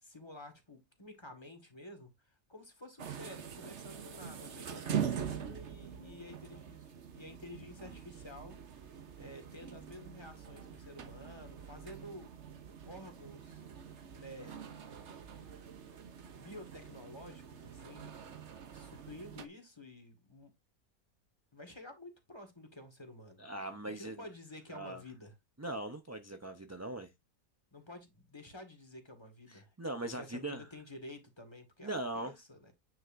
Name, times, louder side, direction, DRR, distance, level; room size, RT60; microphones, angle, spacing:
voice 1, 0.0-12.3 12.9-13.6 14.1-14.6 16.3-18.1 18.7-20.5 21.5-23.4 23.9-25.3 27.7-29.7 30.1-32.7, left 1 dB, 20° left, 1.9 m, -51 dB
sound 1, 3.0-19.5, right 8 dB, 55° right, 1.2 m, -44 dB
voice 2, 23.4-24.2 24.7-25.0 25.6-27.1 29.5-30.7 31.8-32.3, right 1 dB, 15° right, 0.6 m, -40 dB
9.3 x 5.6 x 2.6 m
omnidirectional pair, 1.5 m